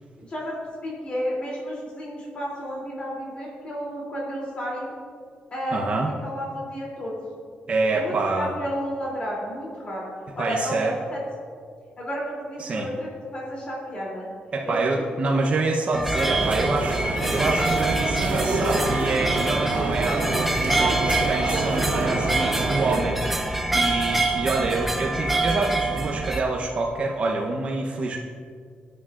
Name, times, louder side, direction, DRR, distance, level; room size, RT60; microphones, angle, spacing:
voice 1, 0.2-0.6 0.8-4.9 5.5-5.8 6.2-7.1 7.9-10.0 10.3-11.2 12.0-14.3 14.6-14.8 17.2-17.4, equal, 35° left, -4 dB, 2.9 m, -32 dB
voice 2, 5.7-6.1 7.7-8.5 10.4-11.0 12.6-12.9 14.5-28.2, right 3 dB, 40° right, -1 dB, 0.8 m, -26 dB
sound 1, 15.9-26.4, right 2 dB, 5° right, 0.8 m, -26 dB
sound 2, 16.2-23.0, right 2 dB, 60° right, 2.3 m, -27 dB
18.5 x 9.8 x 2.5 m, 2.1 s
wide cardioid pair, 155°, 3 cm